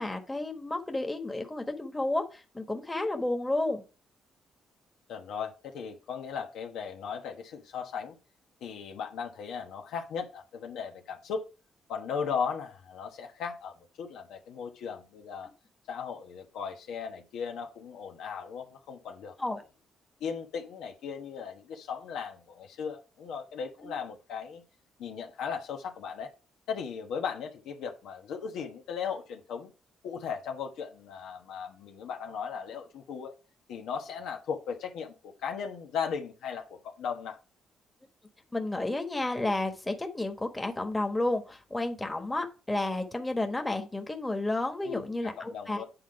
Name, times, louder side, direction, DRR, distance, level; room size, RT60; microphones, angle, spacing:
voice 1, 0.0-3.8 19.4-19.6 23.8-23.9 38.5-45.8, left 2 dB, 15° left, 1.3 m, -31 dB
voice 2, 5.1-8.2 8.6-11.4 11.9-15.5 15.9-19.3 20.2-24.6 25.0-26.3 26.7-29.7 30.0-33.3 33.7-37.4 44.8-45.8, left 6 dB, 85° left, 1.2 m, -37 dB
8.4 x 4.0 x 4.7 m
cardioid pair, 90°, 0 cm